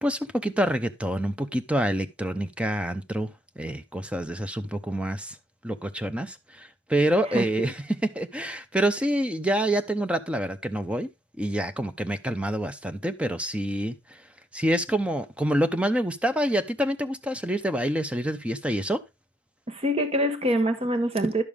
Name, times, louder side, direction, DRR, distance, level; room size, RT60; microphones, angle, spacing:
voice 1, 0.0-5.4 5.6-11.1 11.4-14.2 14.5-19.0, right 1 dB, 5° right, 0.6 m, -27 dB
voice 2, 19.7-21.4, equal, 35° right, 1.3 m, -24 dB
11.0 x 6.9 x 3.5 m
head